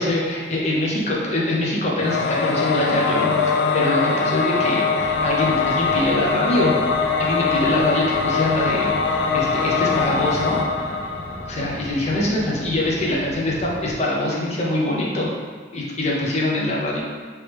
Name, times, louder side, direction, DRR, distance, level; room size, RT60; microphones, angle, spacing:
voice 1, 0.0-6.8 7.2-10.7 11.5-15.3 15.7-17.0, left 1 dB, 40° left, -3 dB, 0.7 m, -23 dB
Singing / Musical instrument, 2.0-12.0, left 4 dB, 75° left, 0.3 m, -22 dB
sound 1, 5.0-14.0, equal, 10° right, 0.4 m, -38 dB
3.4 x 3.0 x 3.1 m, 1.5 s
head